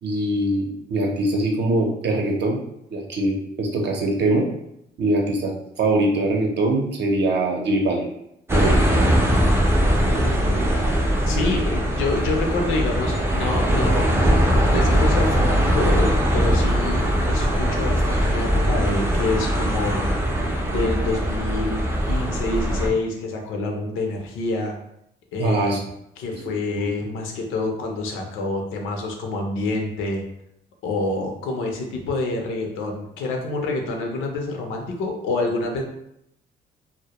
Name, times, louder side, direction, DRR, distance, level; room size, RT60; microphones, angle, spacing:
voice 1, 0.0-2.6 2.9-4.5 5.0-5.5 5.8-8.1 8.5-8.8 25.4-25.8 26.8-26.9, right 2 dB, 60° right, 1 dB, 0.6 m, -22 dB
sound 1, 8.5-22.9, equal, 10° right, 0.4 m, -20 dB
voice 2, 9.9-10.6 11.2-14.1 14.7-20.1 20.6-24.8 25.3-25.8 26.2-30.2 30.8-35.8, left 2 dB, 90° left, 2 dB, 0.5 m, -27 dB
2.1 x 2.1 x 2.8 m, 0.78 s
cardioid pair, 90°, 20 cm